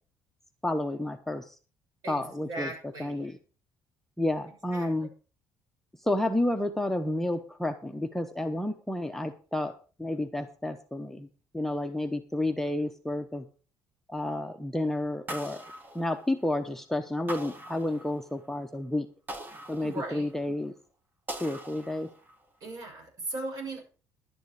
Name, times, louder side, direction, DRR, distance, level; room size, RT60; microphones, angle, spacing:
voice 1, 0.6-1.6 2.1-2.7 3.0-3.4 4.2-5.1 6.0-9.7 10.0-11.3 11.5-13.5 14.1-15.6 15.9-19.1 19.7-20.7 21.4-22.1, left 1 dB, 5° left, 5 dB, 0.9 m, -30 dB
voice 2, 2.0-3.3 4.7-5.1 19.8-20.3 22.6-23.8, right 2 dB, 55° right, 0 dB, 7.0 m, -38 dB
sound 1, 15.3-16.6 17.3-18.5 19.3-20.5 21.3-22.5, right 1 dB, 25° right, 2.0 m, -42 dB
11.5 x 9.4 x 4.9 m, 0.37 s
cardioid pair, 115°, 7 cm